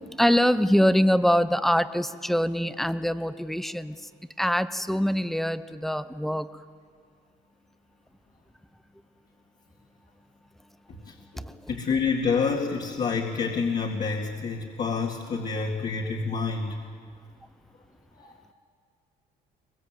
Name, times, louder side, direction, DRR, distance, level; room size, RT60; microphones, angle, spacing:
voice 1, 0.2-3.9 4.4-6.5, equal, ahead, 12 dB, 0.8 m, -23 dB
voice 2, 10.9-16.8 18.2-18.4, left 5 dB, 45° left, -2 dB, 2.4 m, -28 dB
23.5 x 21.5 x 7.9 m, 2.1 s
cardioid pair, 110°, 17 cm